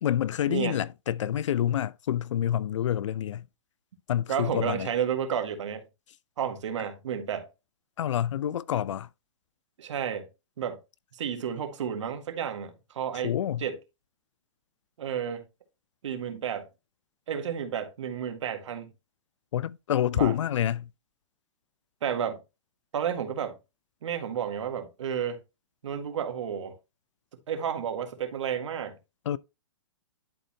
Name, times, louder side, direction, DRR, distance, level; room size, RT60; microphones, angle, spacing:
voice 1, 0.0-3.5 4.1-4.9 8.0-9.1 13.2-13.6 19.5-20.9 29.3-29.4, left 10 dB, 75° left, 0.5 m, -27 dB
voice 2, 4.3-5.8 6.4-7.5 9.8-10.3 10.6-10.8 11.1-13.3 13.6-13.8 15.0-15.4 16.0-16.7 17.3-18.9 20.1-20.3 22.0-22.4 22.9-23.6 24.0-25.4 25.8-26.7 27.5-28.9, right 8 dB, 75° right, 1.8 m, -31 dB
11.5 x 4.1 x 2.8 m
hypercardioid pair, 140°, 16 cm